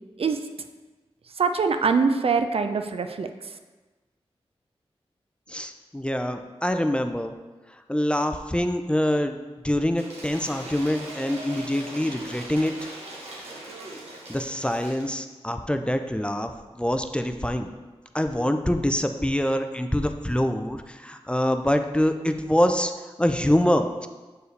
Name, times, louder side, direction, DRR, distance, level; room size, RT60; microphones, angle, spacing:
voice 1, 1.4-3.3, right 5 dB, 65° right, 7 dB, 0.4 m, -23 dB
voice 2, 5.5-7.3 7.9-9.4 9.6-12.7 14.3-17.7 18.1-22.9 23.2-24.1, left 1 dB, 10° left, 7 dB, 0.4 m, -25 dB
Cheering / Applause / Crowd, 9.9-15.2, right 1 dB, 90° right, 1.1 m, -40 dB
6.6 x 4.6 x 3.2 m, 1.2 s
cardioid pair, 50°, 11 cm